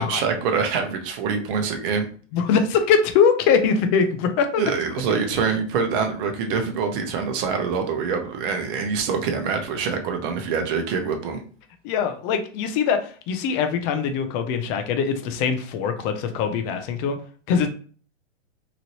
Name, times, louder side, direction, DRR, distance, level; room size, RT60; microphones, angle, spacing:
voice 1, 0.0-2.1 4.6-11.4, right 5 dB, 45° right, 5 dB, 0.8 m, -25 dB
voice 2, 2.3-4.6 11.8-17.2 17.5-17.7, left 6 dB, 30° left, 7 dB, 0.4 m, -22 dB
3.0 x 2.6 x 2.9 m, 0.42 s
hypercardioid pair, 125°, 37 cm